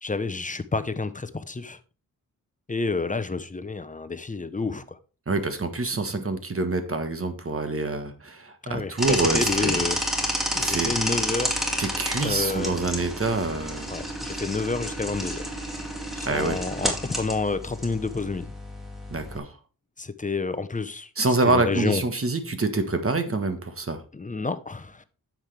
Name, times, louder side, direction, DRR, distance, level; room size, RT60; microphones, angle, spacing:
voice 1, 0.0-1.8 2.7-5.0 8.6-10.0 10.5-11.8 12.1-12.8 13.9-15.5 16.1-18.5 20.0-21.1 21.4-22.0 24.1-25.0, left 3 dB, 20° left, 0.8 m, -29 dB
voice 2, 5.3-9.8 10.6-10.9 11.8-13.9 16.2-16.6 19.1-19.6 21.2-24.0, right 3 dB, 40° right, 1.4 m, -26 dB
sound 1, 9.0-19.4, equal, ahead, 2.2 m, -30 dB
9.8 x 7.4 x 3.4 m
wide cardioid pair, 90°, 35 cm